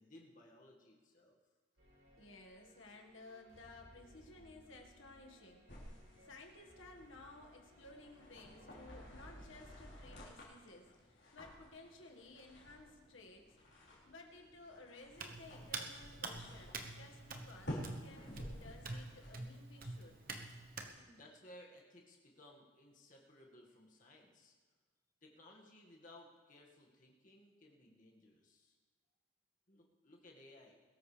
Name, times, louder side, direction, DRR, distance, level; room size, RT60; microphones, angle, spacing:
voice 1, 0.0-1.4 20.9-24.5 25.2-28.8 29.7-30.8, left 1 dB, 40° left, -1 dB, 2.0 m, -60 dB
sound 1, 1.8-10.2, equal, 85° right, 5.1 m, -61 dB
voice 2, 2.2-5.6 6.2-13.5 14.0-20.2, left 2 dB, 75° left, 1 dB, 1.8 m, -57 dB
sound 2, 5.7-19.4, equal, 55° left, 4.3 m, -53 dB
Hands, 15.2-20.9, right 3 dB, 45° right, 1.1 m, -47 dB
22.0 x 13.5 x 3.4 m, 1.4 s
head